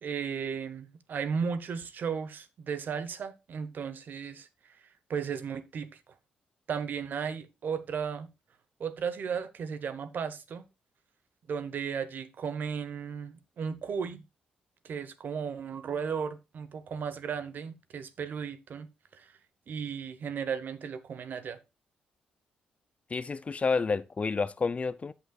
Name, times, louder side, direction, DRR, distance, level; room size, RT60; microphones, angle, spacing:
voice 1, 0.0-4.8 5.1-5.9 6.7-8.3 8.8-10.6 11.5-14.2 14.8-18.9 19.1-19.3 19.7-21.6, right 6 dB, 60° right, 0.9 m, -35 dB
voice 2, 23.1-25.1, left 4 dB, 35° left, 0.5 m, -29 dB
14.0 x 5.9 x 2.3 m
hypercardioid pair, 45°, 4 cm